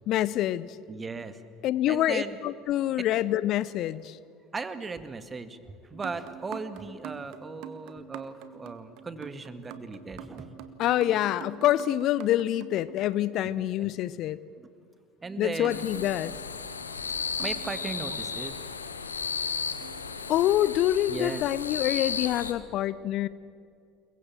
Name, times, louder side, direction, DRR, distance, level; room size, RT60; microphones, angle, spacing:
voice 1, 0.1-0.7 1.6-4.2 10.8-14.4 15.4-16.3 20.3-23.3, left 13 dB, 50° left, 18 dB, 0.7 m, -26 dB
voice 2, 0.9-1.4 1.9-2.4 3.0-3.1 4.5-10.5 11.1-11.2 13.8-13.9 14.6-14.7 15.2-15.9 17.4-18.6 21.1-21.4, right 4 dB, 20° right, 11 dB, 2.0 m, -37 dB
sound 1, 5.9-13.6 15.6-18.6 19.8-20.8 21.5-21.8 22.3-22.4, right 9 dB, 55° right, 1.8 m, -46 dB
sound 2, 15.7-22.5, left 5 dB, 80° left, 1.4 m, -34 dB
28.5 x 22.5 x 7.4 m, 2.3 s
figure-of-eight pair, 65°, 0 cm